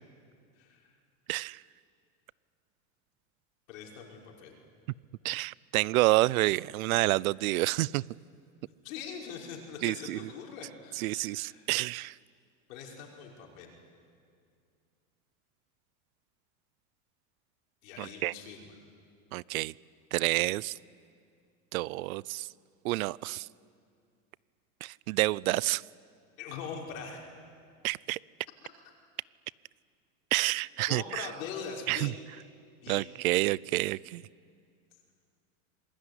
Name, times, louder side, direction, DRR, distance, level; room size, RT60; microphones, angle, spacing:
voice 1, 0.6-0.9 3.7-4.6 8.8-11.6 12.7-13.7 17.8-18.6 26.4-27.3 30.9-32.2 32.8-33.1, left 6 dB, 70° left, 0 dB, 5.5 m, -42 dB
voice 2, 1.3-1.6 5.2-8.0 9.8-10.3 10.9-12.2 18.0-18.3 19.3-19.7 20.1-20.7 21.7-22.5 22.8-23.5 24.8-25.8 27.8-28.2 30.3-31.3 31.9-32.1 32.9-34.2, right 19 dB, 80° right, 24 dB, 0.6 m, -29 dB
27.0 x 20.5 x 9.9 m, 2.3 s
supercardioid pair, 170°, 42 cm